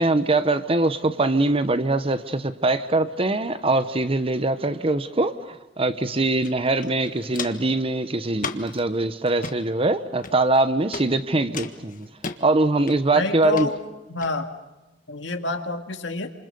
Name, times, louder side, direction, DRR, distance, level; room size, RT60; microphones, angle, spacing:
voice 1, 0.0-12.1 12.4-13.7, right 2 dB, 30° right, 11 dB, 1.1 m, -22 dB
Walk footsteps, 6.4-6.5 6.8-7.7 8.4-8.8 9.3-9.6 10.2-10.6 10.9-11.1 11.5-12.4 12.9-13.2 13.5-13.7 14.2-14.3, left 5 dB, 45° left, 1.5 m, -34 dB
voice 2, 13.1-13.8 14.1-14.5 15.1-16.3, left 2 dB, 75° left, 6 dB, 2.1 m, -28 dB
29.0 x 27.0 x 6.9 m, 1.0 s
head